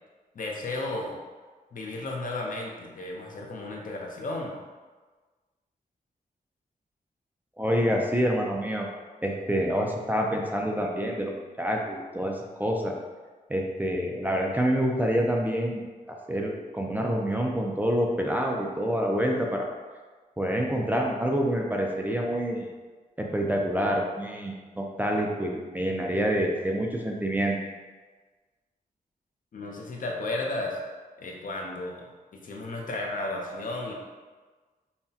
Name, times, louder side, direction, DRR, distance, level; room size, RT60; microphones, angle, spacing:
voice 1, 0.3-1.2 1.7-4.6 29.5-30.8 31.2-33.9, left 2 dB, 60° left, 0 dB, 0.6 m, -34 dB
voice 2, 7.6-8.9 9.2-12.9 13.5-15.8 16.1-19.7 20.4-22.7 23.2-27.6, equal, 10° right, 0 dB, 0.4 m, -27 dB
5.6 x 2.1 x 2.8 m, 1.4 s
wide cardioid pair, 140°, 15 cm